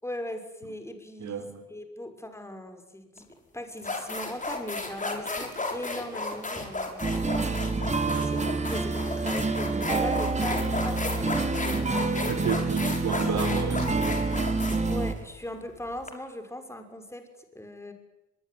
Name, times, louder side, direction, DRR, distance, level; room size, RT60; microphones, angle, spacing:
voice 1, 0.0-1.4 1.7-3.3 3.5-7.6 8.2-11.7 14.9-17.9, left 1 dB, 10° left, 7 dB, 6.1 m, -39 dB
voice 2, 1.2-1.6 8.0-8.2 12.3-14.3, right 8 dB, 65° right, 7 dB, 4.3 m, -32 dB
sound 1, 3.2-3.3 3.8-16.1, left 2 dB, 25° left, 7.0 m, -34 dB
sound 2, 7.0-15.1, right 3 dB, 25° right, 3.7 m, -27 dB
24.0 x 22.0 x 9.7 m, 0.93 s
cardioid pair, 90°, 30 cm